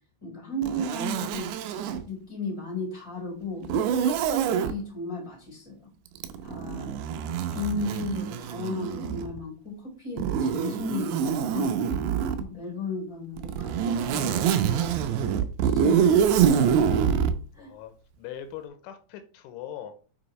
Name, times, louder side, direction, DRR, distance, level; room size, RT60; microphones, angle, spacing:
voice 1, 0.2-1.5 1.8-5.9 6.4-6.9 7.5-11.7 12.3-15.3 15.6-16.3 17.5-17.7, left 1 dB, 5° left, -2 dB, 3.3 m, -35 dB
Zipper (clothing), 0.6-2.0 3.6-4.7 6.2-9.4 10.2-12.4 13.4-17.4, right 8 dB, 80° right, 2.5 m, -25 dB
voice 2, 17.6-19.9, left 10 dB, 85° left, 8 dB, 3.2 m, -41 dB
7.7 x 6.2 x 3.1 m, 0.38 s
omnidirectional pair, 5.5 m